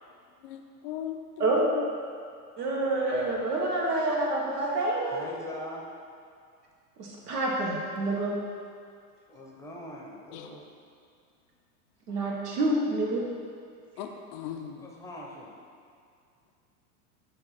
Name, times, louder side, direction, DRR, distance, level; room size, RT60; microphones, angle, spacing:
voice 1, 0.4-1.9 10.3-10.5 14.0-14.9, left 9 dB, 30° left, 4 dB, 0.4 m, -38 dB
voice 2, 2.6-5.3 7.0-8.3 12.1-13.2, right 2 dB, 85° right, -2 dB, 1.5 m, -27 dB
voice 3, 5.1-5.8 9.3-10.6 14.8-15.5, left 1 dB, 5° left, -2 dB, 0.7 m, -42 dB
6.6 x 2.9 x 5.7 m, 2.2 s
hypercardioid pair, 120°, 46 cm